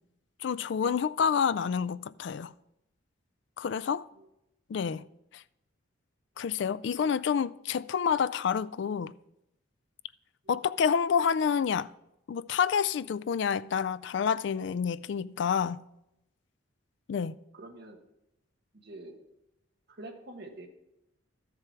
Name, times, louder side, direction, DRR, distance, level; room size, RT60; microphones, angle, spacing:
voice 1, 0.4-2.5 3.6-4.1 4.7-5.0 5.3-5.4 6.4-9.1 10.5-11.9 12.3-15.8 17.1-17.4, left 7 dB, 60° left, 0.3 m, -28 dB
voice 2, 17.5-18.0 18.7-19.2 19.9-20.7, right 2 dB, 50° right, 1.3 m, -46 dB
12.5 x 6.8 x 4.6 m
head